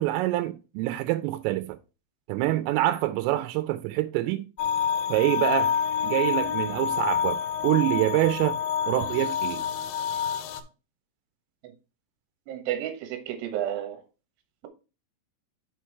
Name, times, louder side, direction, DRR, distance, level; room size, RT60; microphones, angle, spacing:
voice 1, 0.0-1.8 2.3-4.5 5.1-5.7 6.0-8.6 8.9-9.6, right 16 dB, 85° right, 3.2 m, -26 dB
sound 1, 4.6-10.6, left 7 dB, 90° left, 3.4 m, -27 dB
voice 2, 12.5-14.0, right 11 dB, 70° right, 3.0 m, -31 dB
6.9 x 4.5 x 4.6 m
omnidirectional pair, 5.8 m